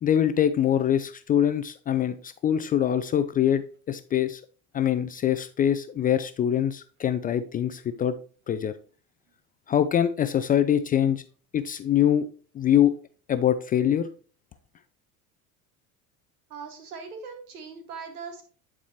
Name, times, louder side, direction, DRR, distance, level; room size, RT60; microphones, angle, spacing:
voice 1, 0.0-4.4 4.7-8.2 8.5-8.7 9.7-11.2 11.5-12.3 12.5-13.0 13.3-14.1, left 10 dB, 20° left, 11 dB, 0.3 m, -24 dB
voice 2, 16.5-18.4, right 5 dB, 85° right, 6 dB, 1.8 m, -40 dB
9.6 x 4.7 x 2.8 m, 0.40 s
hypercardioid pair, 85°, 44 cm